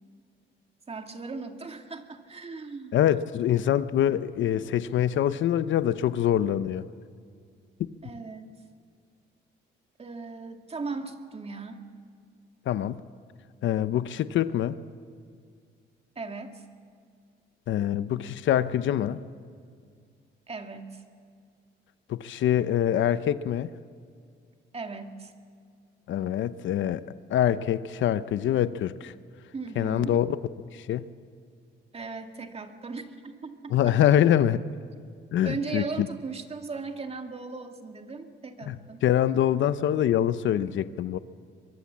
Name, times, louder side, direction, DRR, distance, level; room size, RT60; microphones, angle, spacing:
voice 1, 0.9-3.0 8.0-8.5 10.0-11.9 16.2-16.6 20.5-21.0 24.7-25.3 29.5-30.2 31.9-33.9 35.4-39.1, right 4 dB, 30° right, 5 dB, 2.1 m, -37 dB
voice 2, 2.9-6.9 12.7-13.0 13.6-14.8 17.7-19.2 22.1-23.7 26.1-27.0 27.3-29.1 29.8-30.4 30.7-31.0 33.7-34.6 35.3-36.1 38.7-38.8 39.0-41.2, left 11 dB, 75° left, 14 dB, 0.8 m, -24 dB
23.0 x 23.0 x 7.4 m, 2.1 s
cardioid pair, 90°, 20 cm